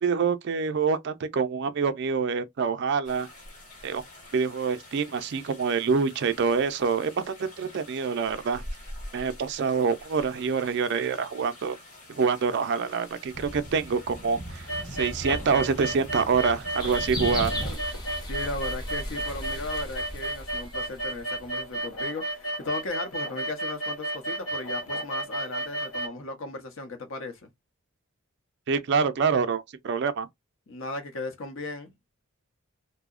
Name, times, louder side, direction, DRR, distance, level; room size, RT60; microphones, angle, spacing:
voice 1, 0.0-3.3 3.8-4.0 4.3-8.6 9.1-11.8 12.2-14.6 14.9-17.5 28.7-30.3, right 5 dB, 50° right, 0.3 m, -26 dB
sound 1, 3.0-17.8, equal, 35° left, 1.1 m, -41 dB
sound 2, 14.7-26.1, right 1 dB, 90° left, 1.0 m, -32 dB
sound 3, 16.8-21.8, left 1 dB, 20° left, 0.6 m, -36 dB
voice 2, 18.2-27.5 30.7-31.9, left 2 dB, 65° left, 0.7 m, -36 dB
2.7 x 2.0 x 2.3 m
head